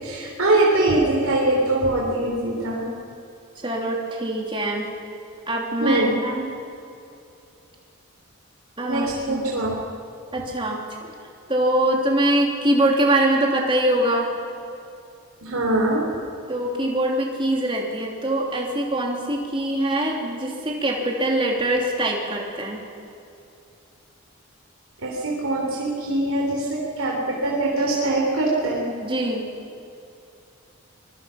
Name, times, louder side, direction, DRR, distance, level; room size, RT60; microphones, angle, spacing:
voice 1, 0.0-2.9 5.8-6.2 8.9-9.8 15.4-16.1 25.0-28.9, right 2 dB, 80° right, -3 dB, 3.7 m, -22 dB
voice 2, 3.6-4.9 5.5-6.5 8.8-9.4 10.3-11.1 11.5-14.3 16.5-22.8 29.0-29.4, right 1 dB, 25° right, 0 dB, 3.2 m, -23 dB
25.0 x 22.5 x 5.9 m, 2.7 s
head